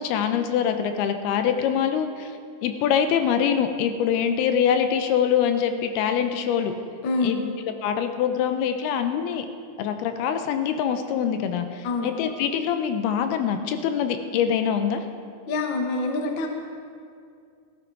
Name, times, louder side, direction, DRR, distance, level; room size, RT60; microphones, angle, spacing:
voice 1, 0.0-2.3 2.6-6.7 7.2-7.4 7.6-9.5 9.8-15.0, left 8 dB, 90° left, 7 dB, 2.8 m, -24 dB
voice 2, 7.0-7.5 11.8-12.1 15.5-16.5, left 3 dB, 65° left, 3 dB, 1.1 m, -26 dB
17.0 x 13.0 x 4.7 m, 2.3 s
omnidirectional pair, 4.4 m